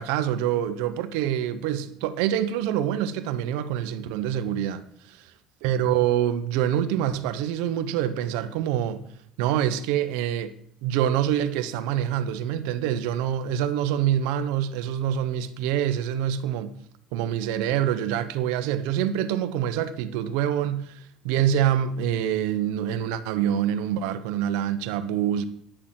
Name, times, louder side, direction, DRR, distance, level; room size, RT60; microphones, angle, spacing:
voice 1, 0.0-4.8 5.6-9.0 9.4-10.5 10.8-16.7 17.1-21.0 21.2-25.4, right 10 dB, 85° right, 0.9 m, -25 dB
10.0 x 6.7 x 7.5 m
cardioid pair, 145°, 0 cm